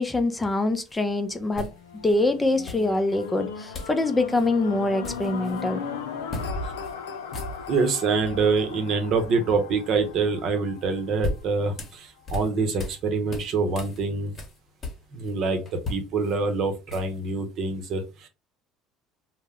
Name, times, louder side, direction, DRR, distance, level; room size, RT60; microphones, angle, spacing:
voice 1, 0.0-1.7 2.0-5.8, left 2 dB, 15° left, 0.4 m, -24 dB
sound 1, 0.9-1.0 1.5-2.2 2.7-3.3 3.7-4.0 4.3-4.5 4.8-5.7 6.3-6.5 6.8-6.9 7.2-7.9 10.8-13.0 13.3-15.3 15.7-17.3, left 2 dB, 40° left, 1.0 m, -37 dB
sound 2, 1.3-11.6 12.2-12.3, left 5 dB, 90° left, 0.5 m, -37 dB
voice 2, 7.7-14.3 15.1-18.3, right 4 dB, 55° right, 0.7 m, -25 dB
2.2 x 2.1 x 3.4 m
hypercardioid pair, 80°, 0 cm